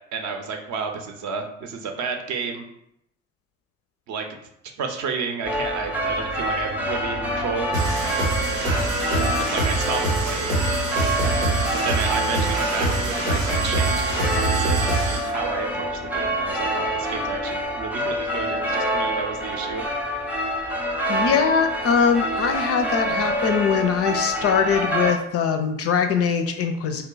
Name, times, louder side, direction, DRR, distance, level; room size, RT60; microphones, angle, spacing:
voice 1, 0.1-2.6 4.1-4.2 4.8-7.7 9.5-10.6 11.8-14.8 15.1-19.8, right 5 dB, 50° right, 3 dB, 0.7 m, -31 dB
sound 1, 5.4-25.1, equal, 5° right, 0.6 m, -26 dB
sound 2, 7.7-15.3, right 2 dB, 85° right, 0.9 m, -24 dB
voice 2, 21.1-27.0, left 6 dB, 40° left, 6 dB, 0.4 m, -22 dB
2.8 x 2.2 x 3.8 m, 0.76 s
figure-of-eight pair, 50°, 38 cm